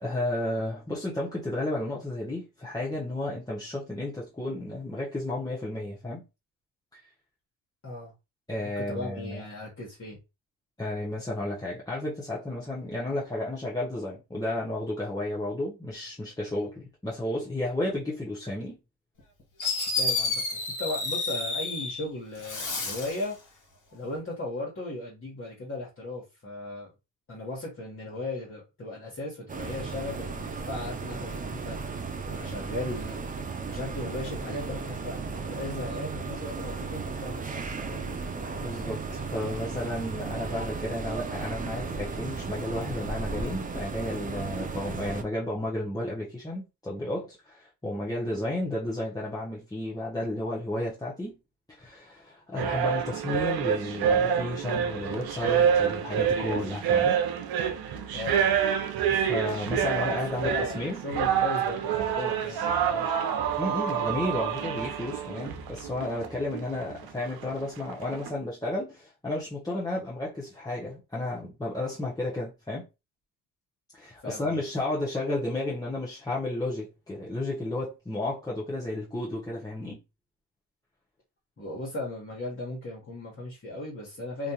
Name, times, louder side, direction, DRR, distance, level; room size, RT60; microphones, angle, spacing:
voice 1, 0.0-6.2 8.5-9.4 10.8-18.8 38.5-51.4 51.7-57.2 59.1-61.0 62.5-62.6 63.6-72.8 73.9-80.0, left 1 dB, 10° left, 0.8 m, -32 dB
voice 2, 8.6-10.2 19.9-23.6 23.9-26.9 27.3-31.8 32.2-33.2 33.6-38.2 58.1-58.6 60.4-63.2 74.2-74.6 81.6-84.5, left 2 dB, 30° left, 1.2 m, -37 dB
Fireworks, 19.2-19.3 19.6-22.0 22.4-23.2, left 3 dB, 45° left, 1.5 m, -30 dB
sound 1, 29.5-45.2, right 4 dB, 20° right, 0.4 m, -35 dB
sound 2, 52.6-68.3, right 8 dB, 60° right, 0.6 m, -27 dB
2.5 x 2.3 x 2.8 m
supercardioid pair, 70°, 42 cm